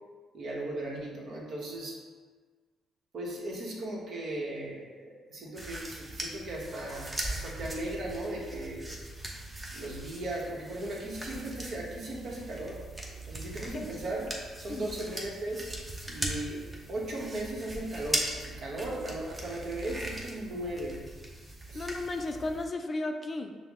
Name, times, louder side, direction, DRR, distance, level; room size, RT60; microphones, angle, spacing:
voice 1, 0.3-2.0 3.1-8.9 9.7-12.8 13.3-14.3 14.6-15.7 16.1-16.6 16.9-21.0 21.7-21.9, right 1 dB, 65° right, -3 dB, 1.0 m, -37 dB
sound 1, 5.6-22.7, right 1 dB, 15° right, 0.7 m, -40 dB
voice 2, 21.7-23.5, left 2 dB, 35° left, 6 dB, 0.3 m, -34 dB
5.6 x 2.1 x 3.5 m, 1.4 s
cardioid pair, 90°, 0 cm